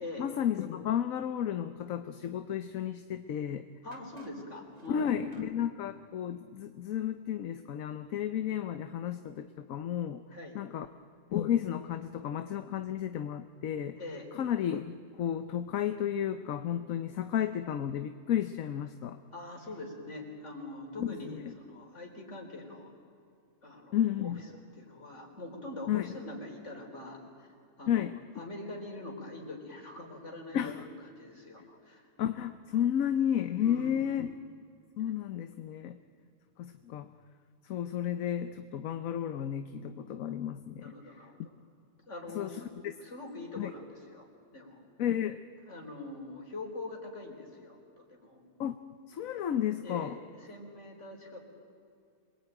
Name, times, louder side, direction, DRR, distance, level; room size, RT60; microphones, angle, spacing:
voice 1, 0.0-3.7 4.9-10.2 10.5-10.9 11.3-14.0 14.3-19.2 21.0-21.4 23.9-24.4 25.9-26.2 27.9-28.2 30.5-30.8 32.2-34.3 35.0-36.0 36.6-37.1 37.6-40.9 42.3-43.0 43.6-43.7 45.0-45.4 48.6-48.8 49.1-50.2, left 10 dB, 75° left, 10 dB, 1.2 m, -32 dB
sound 1, 3.1-3.2 3.9-5.5, right 2 dB, 30° right, 1.9 m, -56 dB
voice 2, 3.8-5.3 10.3-10.6 14.0-14.3 19.3-22.9 23.6-23.9 24.2-24.3 24.7-27.5 27.8-28.1 28.4-30.8 31.1-32.1 33.6-34.1 40.8-41.5 42.1-42.7 43.0-44.3 44.5-44.8 45.6-48.4 49.8-50.1 50.4-51.4, left 2 dB, 55° left, 1 dB, 4.4 m, -43 dB
27.0 x 21.5 x 9.0 m, 2.4 s
omnidirectional pair, 1.4 m